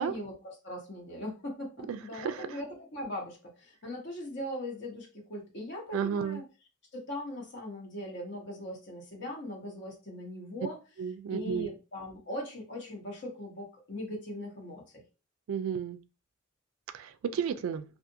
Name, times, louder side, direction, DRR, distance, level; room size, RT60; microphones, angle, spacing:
voice 1, 0.0-6.4 6.9-10.8 11.3-14.8, left 1 dB, 55° left, 1.1 m, -40 dB
voice 2, 1.9-2.5 5.9-6.4 11.0-11.7 15.5-16.0 16.9-17.8, right 7 dB, 75° right, 0.3 m, -32 dB
2.5 x 2.4 x 2.6 m
head